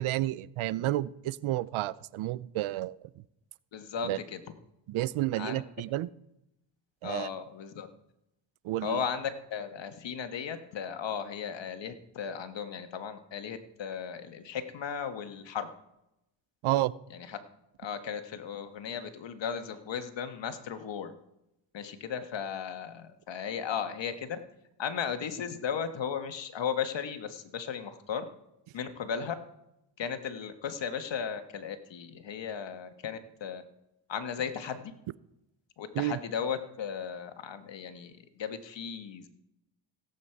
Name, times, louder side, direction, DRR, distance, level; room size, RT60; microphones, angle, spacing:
voice 1, 0.0-3.1 4.0-4.2 4.9-6.1 7.0-7.3 8.6-9.0 16.6-16.9 35.9-36.2, right 15 dB, 80° right, 19 dB, 0.6 m, -31 dB
voice 2, 3.7-4.4 5.4-5.6 7.0-7.9 8.8-15.7 17.8-21.1 21.7-24.4 24.8-28.3 28.7-29.3 30.0-33.6 34.1-34.9 35.8-39.3, left 7 dB, 60° left, 8 dB, 1.6 m, -36 dB
17.0 x 8.4 x 4.7 m, 0.86 s
cardioid pair, 75°, 49 cm